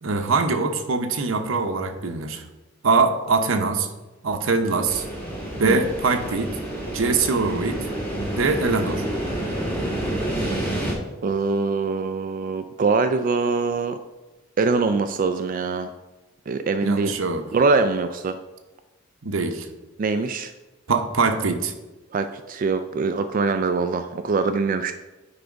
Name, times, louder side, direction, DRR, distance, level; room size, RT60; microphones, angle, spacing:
voice 1, 0.0-2.4 2.8-3.9 4.2-5.1 5.5-6.6 6.9-7.9 8.3-9.0 16.8-17.5 19.2-19.7 20.9-21.7, right 4 dB, 80° right, 6 dB, 0.8 m, -23 dB
sound 1, 4.8-10.9, right 1 dB, 10° left, 2.0 m, -28 dB
voice 2, 11.2-14.0 14.6-15.9 16.5-17.1 17.5-18.4 20.0-20.5 22.1-24.9, right 4 dB, 45° right, 9 dB, 0.3 m, -23 dB
9.8 x 3.4 x 5.2 m, 1.1 s
head